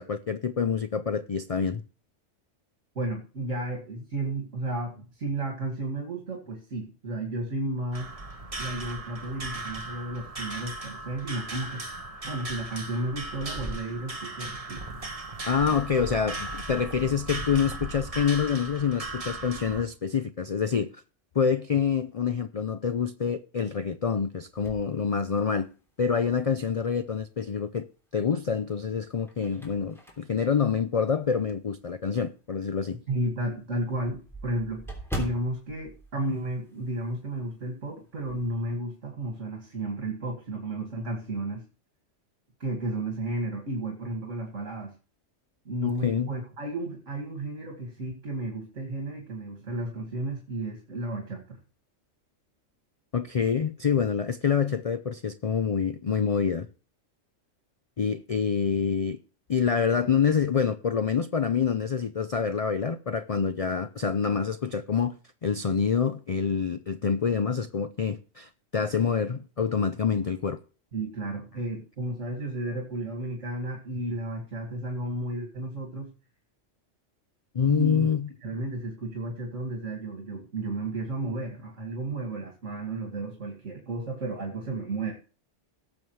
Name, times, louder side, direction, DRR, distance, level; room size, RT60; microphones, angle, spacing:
voice 1, 0.0-1.8 15.5-20.9 21.3-25.7 26.0-27.9 28.1-33.0 45.8-46.3 53.1-56.7 58.0-59.2 59.5-65.1 65.4-70.6 77.5-78.3, left 6 dB, 50° left, 0.4 m, -26 dB
voice 2, 2.9-8.1 8.6-11.8 12.2-15.0 33.1-34.9 35.2-41.6 42.6-44.9 45.7-51.6 70.9-76.1 77.7-78.1 78.4-85.1, right 2 dB, 75° right, 2.5 m, -33 dB
sound 1, 7.9-19.8, right 2 dB, 30° right, 1.4 m, -37 dB
sound 2, 24.6-25.9 26.4-26.5 28.0-28.5 29.0-31.6 32.1-32.2 32.6-32.7 33.0-33.1 33.3-37.1 37.3-37.6 37.9-38.5, right 1 dB, ahead, 3.2 m, -41 dB
18.0 x 7.2 x 3.2 m
omnidirectional pair, 1.3 m